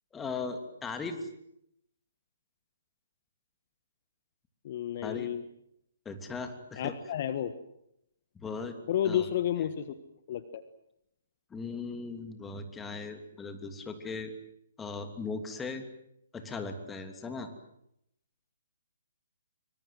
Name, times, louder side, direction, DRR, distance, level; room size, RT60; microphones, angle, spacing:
voice 1, 0.1-1.3 5.0-5.3 6.0-7.0 8.3-8.8 9.0-9.3 11.5-14.3 14.8-15.8 16.3-17.5, left 4 dB, 10° left, 7 dB, 3.0 m, -38 dB
voice 2, 4.6-5.4 6.8-7.5 8.9-9.9 10.3-10.6, left 10 dB, 45° left, 12 dB, 1.4 m, -31 dB
25.5 x 24.5 x 7.8 m, 0.79 s
figure-of-eight pair, 130°, 0 cm